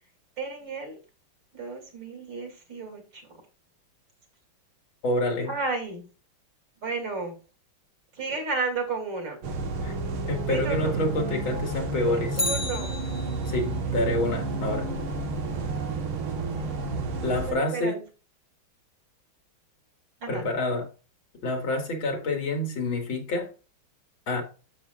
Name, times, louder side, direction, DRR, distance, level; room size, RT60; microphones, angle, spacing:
voice 1, 0.4-1.0 1.5-3.2 5.5-6.0 6.8-7.4 8.1-9.4 10.5-10.9 12.1-12.9 17.5-18.0 20.2-20.5, right 4 dB, 60° right, 3.6 m, -32 dB
voice 2, 5.0-5.5 9.8-9.9 10.3-12.4 13.5-14.9 17.2-18.0 20.3-20.9 21.4-23.5 24.3-24.4, left 2 dB, 75° left, 2.9 m, -27 dB
sound 1, 9.4-17.5, right 3 dB, 85° right, 2.2 m, -31 dB
Bicycle, 12.3-13.7 22.0-22.1, left 2 dB, 15° left, 0.9 m, -32 dB
11.5 x 7.4 x 2.5 m
omnidirectional pair, 2.2 m